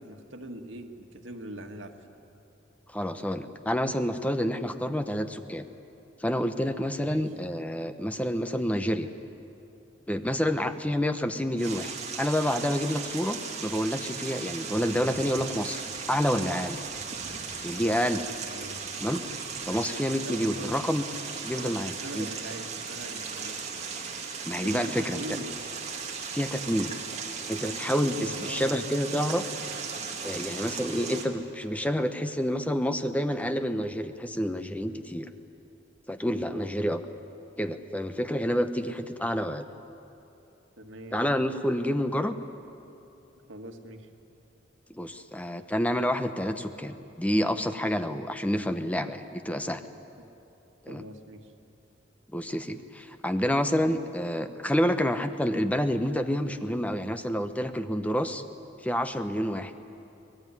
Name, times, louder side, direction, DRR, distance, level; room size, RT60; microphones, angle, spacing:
voice 1, 0.0-2.1 7.0-7.2 10.4-10.7 18.4-18.8 20.2-20.8 21.6-23.6 24.6-25.6 28.2-28.7 36.4-36.7 40.8-41.2 43.5-44.1 50.9-51.5, right 1 dB, 90° right, 4 dB, 1.9 m, -42 dB
voice 2, 2.9-5.6 6.2-9.1 10.1-16.8 17.6-18.2 19.0-19.2 19.7-21.1 21.4-22.3 24.5-25.2 26.3-26.9 27.5-29.5 30.2-35.3 36.1-37.0 37.6-39.7 41.1-42.4 44.9-49.8 50.8-51.0 52.3-58.4 58.8-59.8, equal, 10° left, 9 dB, 0.8 m, -28 dB
sound 1, 11.6-31.3, right 5 dB, 35° right, 2.4 m, -37 dB
24.5 x 20.0 x 9.7 m, 2.9 s
head